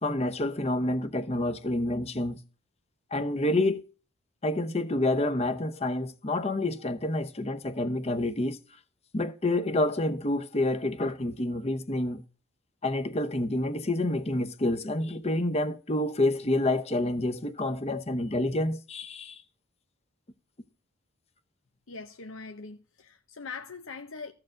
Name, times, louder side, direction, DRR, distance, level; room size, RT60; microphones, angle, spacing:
voice 1, 0.0-2.4 3.1-3.8 4.4-8.6 9.1-12.2 12.8-19.4, left 1 dB, 30° left, 0.9 m, -28 dB
voice 2, 21.9-24.3, left 4 dB, 75° left, 0.9 m, -42 dB
14.5 x 4.9 x 7.6 m
head